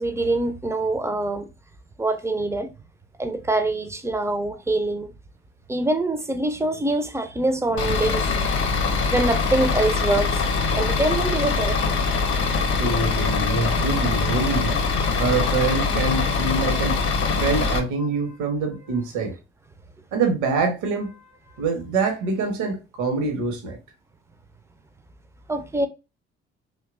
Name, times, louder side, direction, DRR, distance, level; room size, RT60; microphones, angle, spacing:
voice 1, 0.0-1.5 2.0-2.7 3.2-5.1 5.7-12.0 13.7-14.4 25.5-25.9, right 2 dB, 10° right, 0.4 m, -25 dB
Bus / Idling, 7.8-17.8, left 4 dB, 45° left, 0.7 m, -23 dB
voice 2, 12.7-17.0 17.4-19.3 20.1-21.2 21.6-23.8, right 4 dB, 65° right, 0.8 m, -25 dB
2.7 x 2.2 x 2.4 m
hypercardioid pair, 45°, 31 cm